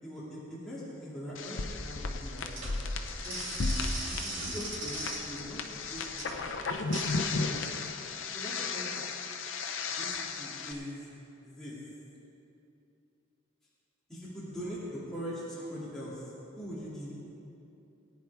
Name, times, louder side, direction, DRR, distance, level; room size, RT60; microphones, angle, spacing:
voice 1, 0.0-2.8 3.1-3.4 4.0-6.3 7.3-7.8 8.3-9.1 10.0-11.1 11.4-11.7 14.1-16.2 16.5-17.1, equal, ahead, -10 dB, 2.6 m, -42 dB
sound 1, 1.4-10.7, left 3 dB, 75° left, 0.8 m, -35 dB
sound 2, 1.9-7.0, right 2 dB, 75° right, 2.9 m, -40 dB
19.5 x 9.4 x 3.6 m, 2.8 s
head